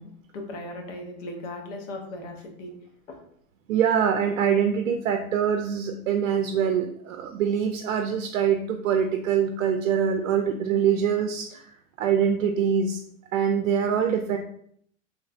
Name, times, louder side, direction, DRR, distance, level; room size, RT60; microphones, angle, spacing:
voice 1, 0.0-2.7 3.1-3.2, left 1 dB, 70° left, 2 dB, 1.0 m, -38 dB
voice 2, 3.7-11.6 12.0-13.0 13.3-14.4, right 8 dB, 85° right, 4 dB, 0.5 m, -24 dB
3.1 x 3.1 x 2.5 m, 0.65 s
hypercardioid pair, 110°, 39 cm